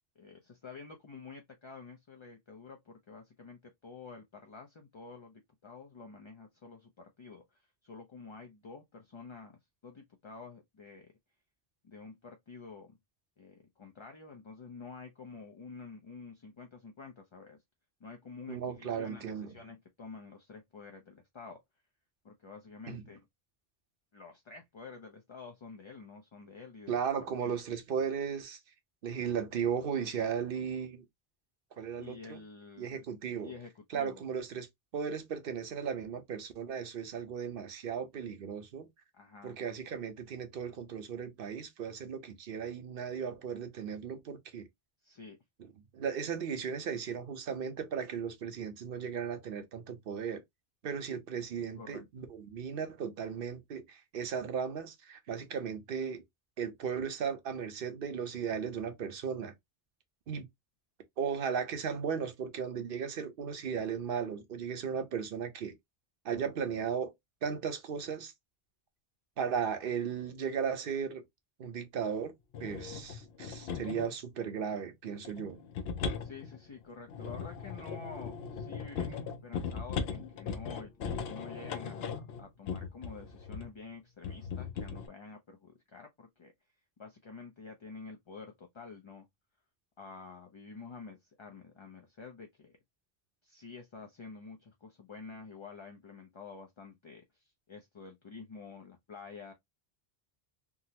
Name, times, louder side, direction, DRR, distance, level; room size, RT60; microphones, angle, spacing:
voice 1, 0.2-11.1 11.8-13.0 13.4-17.6 18.0-21.6 22.2-23.3 24.1-27.5 32.0-33.0 33.4-34.2 39.1-39.6 45.0-45.4 51.8-52.0 76.2-86.5 87.0-89.3 90.0-92.8 93.4-99.5, left 4 dB, 40° left, 0.4 m, -49 dB
voice 2, 18.5-19.5 22.9-23.0 26.9-28.6 29.0-31.0 31.8-32.4 32.8-33.5 33.9-34.7 34.9-38.9 39.4-44.7 45.9-50.4 50.8-56.2 56.6-59.5 60.3-60.5 61.2-65.8 66.2-67.1 67.4-68.3 69.4-71.2 71.6-72.3 72.6-75.6, right 7 dB, 65° right, 0.9 m, -36 dB
sound 1, 72.5-74.2 75.2-83.8 84.2-85.1, left 6 dB, 80° left, 0.8 m, -39 dB
3.6 x 2.0 x 2.7 m
omnidirectional pair, 1.0 m